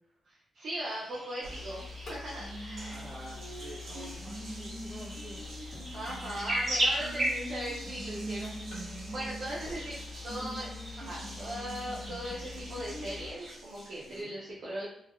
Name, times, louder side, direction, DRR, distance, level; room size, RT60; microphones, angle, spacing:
voice 1, 0.3-3.0 5.9-8.6 9.1-9.9 10.2-10.7 11.0-14.9, equal, 50° right, -7 dB, 0.6 m, -39 dB
sound 1, 0.8-13.5, right 1 dB, 35° right, 1.0 m, -38 dB
sound 2, 1.4-13.3, left 4 dB, 45° left, 0.7 m, -46 dB
Water tap faucet, 1.4-14.2, right 1 dB, 80° right, 1.0 m, -44 dB
voice 2, 2.9-5.4 13.9-14.3, equal, 10° right, -14 dB, 1.1 m, -48 dB
3.3 x 2.3 x 2.2 m, 0.74 s
wide cardioid pair, 175°, 0 cm